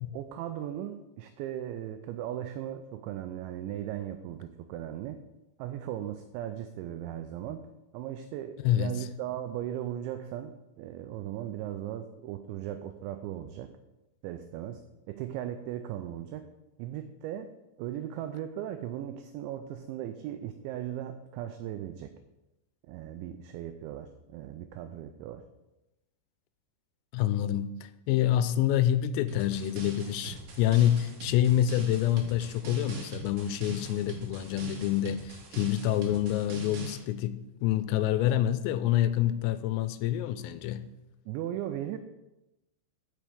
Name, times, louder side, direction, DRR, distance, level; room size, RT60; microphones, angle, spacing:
voice 1, 0.1-5.2 5.6-7.6 7.9-13.7 14.2-14.8 15.1-16.5 16.8-17.5 17.8-22.1 22.9-25.4 41.3-42.0, right 11 dB, 90° right, 8 dB, 2.6 m, -37 dB
voice 2, 27.1-27.7 28.1-40.8, left 12 dB, 85° left, 12 dB, 3.3 m, -27 dB
sound 1, 29.3-37.0, right 4 dB, 65° right, 3.8 m, -42 dB
12.5 x 6.6 x 5.0 m, 0.98 s
omnidirectional pair, 5.9 m